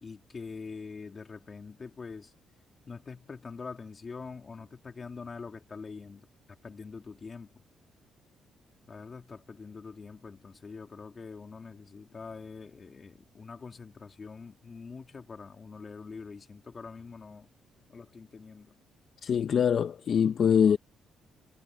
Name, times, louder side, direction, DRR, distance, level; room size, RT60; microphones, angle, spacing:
voice 1, 0.0-2.3 2.9-6.2 6.6-7.5 8.9-17.5 17.9-18.7, left 4 dB, 35° left, 2.8 m, -44 dB
voice 2, 19.2-20.8, left 7 dB, 55° left, 0.9 m, -23 dB
cardioid pair, 90°, 0 cm